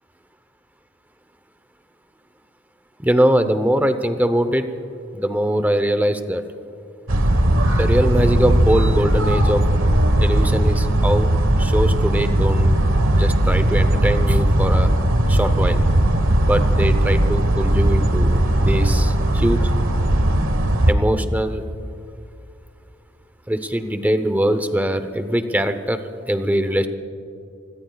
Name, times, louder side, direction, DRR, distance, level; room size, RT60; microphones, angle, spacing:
voice 1, 3.0-4.7 5.1-6.4 7.8-9.6 10.2-11.3 11.6-12.8 13.1-14.9 15.3-15.8 16.4-19.6 20.9-21.6 23.5-26.0 26.3-26.9, equal, 10° right, 9 dB, 0.8 m, -22 dB
sound 1, 7.1-20.9, right 1 dB, 80° right, 1.3 m, -18 dB
27.5 x 21.0 x 2.4 m, 2.6 s
head